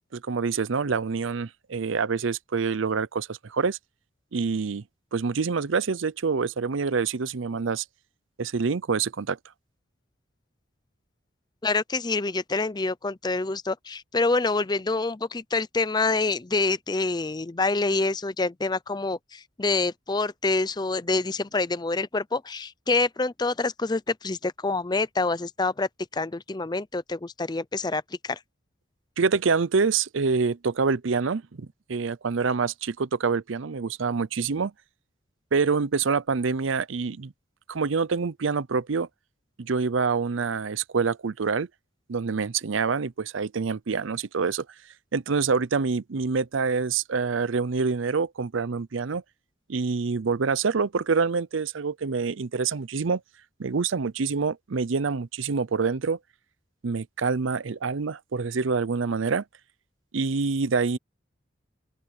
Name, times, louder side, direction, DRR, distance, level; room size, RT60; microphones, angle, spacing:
voice 1, 0.1-3.8 4.3-4.8 5.1-7.8 8.4-9.4 29.2-34.7 35.5-37.3 37.7-39.1 39.6-41.7 42.1-44.7 45.1-49.2 49.7-53.2 53.6-56.2 56.8-59.4 60.1-61.0, right 5 dB, 75° right, 0.6 m, -26 dB
voice 2, 11.6-28.4, left 3 dB, 20° left, 0.5 m, -27 dB
open air
head